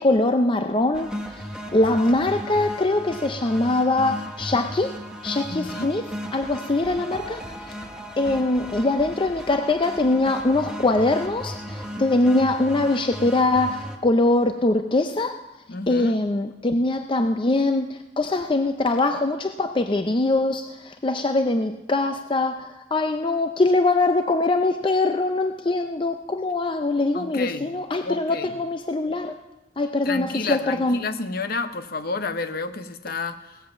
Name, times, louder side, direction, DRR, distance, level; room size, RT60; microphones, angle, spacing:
voice 1, 0.0-1.4 1.7-4.9 5.2-6.0 6.3-7.7 8.2-15.4 15.9-29.4 29.8-31.0, left 2 dB, 25° left, 7 dB, 0.5 m, -22 dB
sound 1, 0.9-14.0, equal, 5° right, 1.0 m, -36 dB
voice 2, 5.5-5.9 15.7-16.2 27.1-27.7 28.0-28.6 30.0-33.7, left 3 dB, 50° left, 10 dB, 0.8 m, -31 dB
17.5 x 7.7 x 7.2 m, 1.0 s
head